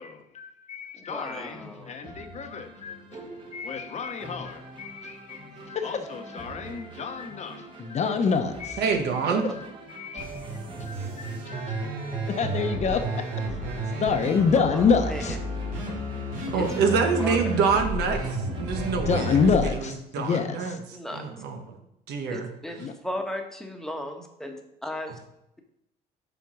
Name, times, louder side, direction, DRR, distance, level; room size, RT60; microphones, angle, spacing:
voice 1, 0.0-9.0 9.2-11.9 12.3-13.3 14.0-15.4 18.8-20.8 22.8-22.9, left 5 dB, 40° left, 6 dB, 1.0 m, -28 dB
voice 2, 1.0-1.9 9.3-9.4 14.7-14.8 15.1-15.2 16.5-16.6 17.2-17.4 20.9-21.2 22.3-24.1 24.4-24.5 24.8-25.1, left 1 dB, 5° left, 3 dB, 1.2 m, -35 dB
sound 1, 1.3-19.5, right 3 dB, 30° right, 1.5 m, -44 dB
voice 3, 8.8-9.5 16.5-19.4 20.1-20.8 21.1-21.8 22.1-22.5, right 5 dB, 80° right, 5 dB, 1.3 m, -26 dB
sound 2, 10.2-19.7, right 1 dB, 50° right, 3.2 m, -32 dB
7.1 x 4.6 x 6.2 m, 0.81 s
cardioid pair, 110°, 17 cm